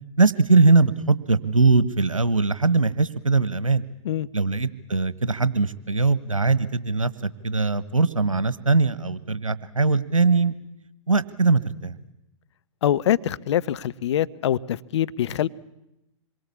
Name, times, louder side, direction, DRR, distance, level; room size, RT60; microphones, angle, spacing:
voice 1, 0.2-3.8 4.3-7.1 7.4-10.5 11.1-11.9, right 3 dB, 90° right, 16 dB, 1.4 m, -21 dB
voice 2, 12.8-15.5, left 11 dB, 60° left, 15 dB, 1.0 m, -24 dB
27.0 x 23.0 x 8.5 m, 0.88 s
figure-of-eight pair, 110°, 17 cm